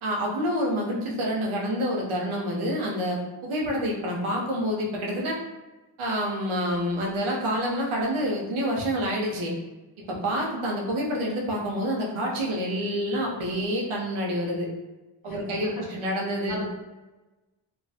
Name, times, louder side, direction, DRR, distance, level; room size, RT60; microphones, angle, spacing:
voice 1, 0.0-5.4 6.0-9.5 10.0-14.7 15.2-16.6, equal, 90° right, -2 dB, 0.7 m, -28 dB
voice 2, 15.2-15.8 16.5-16.6, left 1 dB, 45° left, -3 dB, 0.9 m, -37 dB
2.3 x 2.2 x 2.7 m, 1.1 s
cardioid pair, 45°, 48 cm